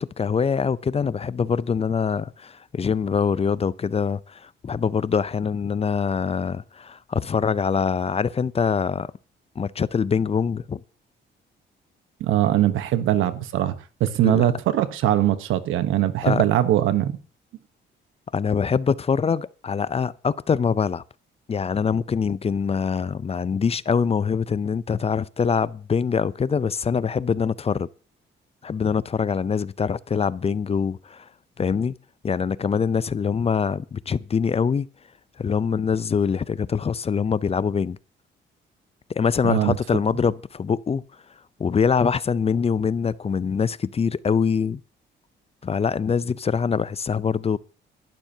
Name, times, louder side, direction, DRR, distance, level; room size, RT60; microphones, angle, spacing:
voice 1, 0.0-9.1 9.6-10.8 14.2-14.4 16.2-16.4 18.3-21.0 21.5-27.9 28.6-31.3 31.6-31.9 32.2-34.9 35.4-38.0 39.1-41.0 41.6-44.8 45.6-47.6, left 6 dB, 30° left, 0.5 m, -24 dB
voice 2, 12.2-13.7 14.0-17.1 39.4-39.8, right 12 dB, 85° right, 1.1 m, -21 dB
22.0 x 12.0 x 2.8 m
cardioid pair, 90°, 20 cm